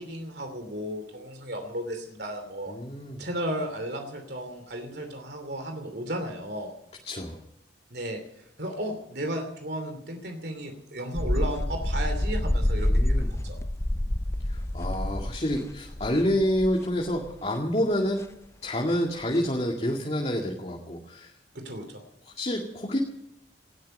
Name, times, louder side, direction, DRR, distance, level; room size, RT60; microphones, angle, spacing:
voice 1, 0.0-2.7 3.2-6.7 7.9-8.2 8.6-13.6 21.5-22.0, right 1 dB, 60° right, 5 dB, 2.9 m, -34 dB
voice 2, 2.7-3.2 7.0-7.4 12.9-13.3 14.5-18.3 18.6-21.3 22.3-23.0, equal, 35° left, 0 dB, 2.1 m, -28 dB
sound 1, 11.1-17.3 17.5-17.6 18.2-18.3 18.9-19.0 19.3-19.4, left 1 dB, 15° left, 0.5 m, -27 dB
19.0 x 13.5 x 5.4 m, 0.83 s
head